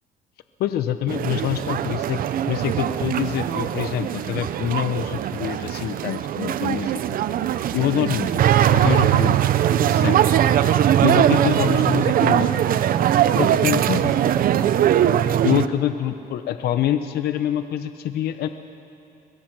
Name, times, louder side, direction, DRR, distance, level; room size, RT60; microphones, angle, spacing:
voice 1, 0.6-2.2 2.5-7.0 7.7-8.4 8.7-9.4 9.9-10.2 11.0-12.5 13.4-14.1 15.4-18.5, left 11 dB, 70° left, 9 dB, 0.8 m, -25 dB
sound 1, 1.1-15.7, right 10 dB, 60° right, 0.8 m, -20 dB
23.0 x 21.5 x 6.1 m, 2.6 s
cardioid pair, 110°, 17 cm